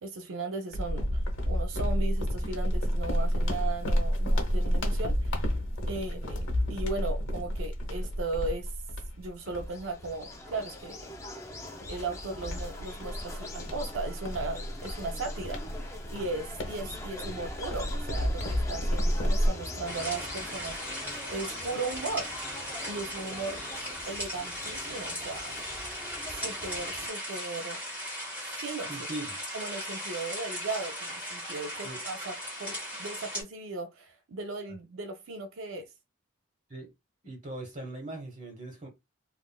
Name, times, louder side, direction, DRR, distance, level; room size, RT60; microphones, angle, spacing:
voice 1, 0.0-5.4 5.9-8.7 9.2-11.0 11.9-15.6 16.1-22.3 22.9-25.5 26.3-27.8 28.6-29.0 29.5-35.9, right 3 dB, 75° right, 0.5 m, -37 dB
sound 1, 0.7-10.6 11.1-11.2 11.8-19.5, equal, 75° left, 0.9 m, -30 dB
sound 2, 9.4-27.1, left 2 dB, 15° left, 0.4 m, -43 dB
sound 3, 19.8-33.4, equal, 10° right, 1.3 m, -38 dB
voice 2, 28.9-29.4 31.8-32.0 36.7-36.9 37.2-38.9, right 2 dB, 35° right, 1.1 m, -40 dB
3.5 x 2.4 x 2.2 m
head